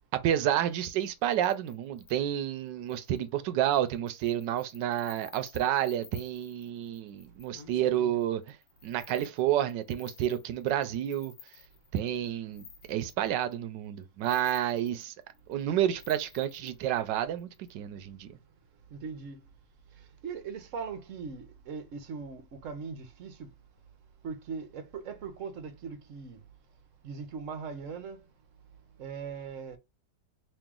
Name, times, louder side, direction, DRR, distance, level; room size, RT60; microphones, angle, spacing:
voice 1, 0.1-8.6 8.8-11.3 11.9-15.1 15.5-18.3, right 11 dB, 85° right, 1.2 m, -30 dB
sound 1, 0.8-2.2 2.9-3.3 3.6-13.5 14.0-15.6 16.0-17.7, left 7 dB, 70° left, 1.4 m, -53 dB
voice 2, 18.9-19.4 19.9-23.5 24.2-26.4 27.0-28.2 29.0-29.8, right 5 dB, 55° right, 1.0 m, -40 dB
3.0 x 3.0 x 3.6 m
omnidirectional pair, 1.9 m